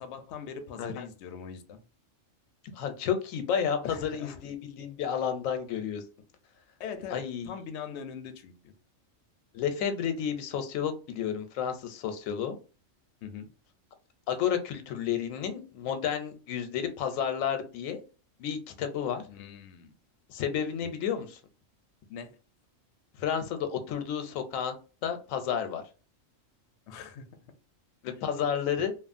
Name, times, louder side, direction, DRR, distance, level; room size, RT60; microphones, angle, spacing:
voice 1, 0.0-1.8 3.8-4.4 6.8-8.7 13.2-13.5 19.3-19.9 20.8-20.9 22.1-22.4 26.9-27.3, left 6 dB, 65° left, 8 dB, 0.8 m, -41 dB
voice 2, 2.7-6.0 7.1-7.6 9.5-12.6 14.3-18.0 18.4-19.2 20.3-21.4 23.2-24.7 25.0-25.8 28.0-28.9, left 8 dB, 90° left, 7 dB, 1.0 m, -31 dB
2.9 x 2.3 x 2.5 m, 0.34 s
omnidirectional pair, 1.4 m